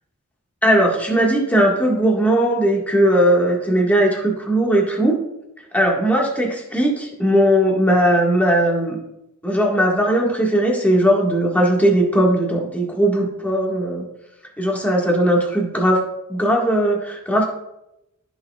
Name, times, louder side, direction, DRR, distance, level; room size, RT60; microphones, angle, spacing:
voice 1, 0.6-5.2 5.7-9.0 9.4-14.0 14.6-16.0 16.3-17.4, right 1 dB, 5° left, -2 dB, 1.7 m, -18 dB
14.5 x 6.3 x 2.4 m, 0.87 s
head